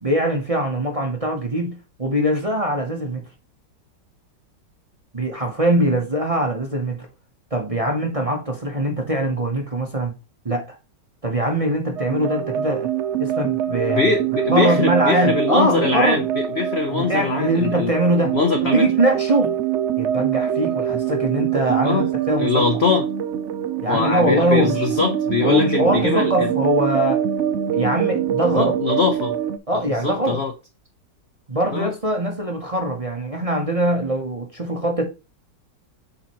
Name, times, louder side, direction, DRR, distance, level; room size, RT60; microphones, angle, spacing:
voice 1, 0.0-3.2 5.1-7.1 7.5-10.1 10.4-10.8 11.2-12.9 13.2-14.1 14.5-16.2 16.9-18.3 18.6-19.6 20.0-22.5 23.8-24.9 25.4-27.2 27.7-28.7 29.7-30.4 31.5-35.1, right 1 dB, 25° right, 0.8 m, -22 dB
sound 1, 12.0-29.6, right 10 dB, 85° right, 0.6 m, -24 dB
voice 2, 13.9-17.9 18.3-18.9 21.8-22.1 22.4-23.1 23.9-26.5 28.5-29.3 29.7-30.5 31.7-31.9, left 4 dB, 60° left, 0.6 m, -22 dB
7.3 x 5.0 x 3.0 m
omnidirectional pair, 1.9 m